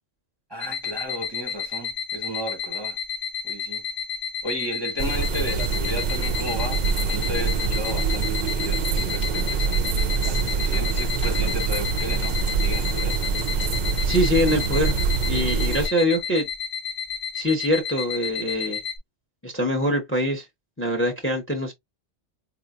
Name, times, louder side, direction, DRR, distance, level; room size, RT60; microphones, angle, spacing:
voice 1, 0.5-3.0 3.4-3.8 4.4-9.8 10.2-13.2, equal, 25° right, 0.8 m, -34 dB
sound 1, 0.6-19.0, left 7 dB, 55° left, 0.5 m, -32 dB
sound 2, 5.0-15.9, right 5 dB, 60° right, 0.5 m, -25 dB
voice 2, 14.0-15.0 15.2-16.5 17.3-18.8 19.4-20.5 20.8-21.7, equal, 10° left, 0.7 m, -24 dB
4.0 x 2.8 x 2.4 m
omnidirectional pair, 1.3 m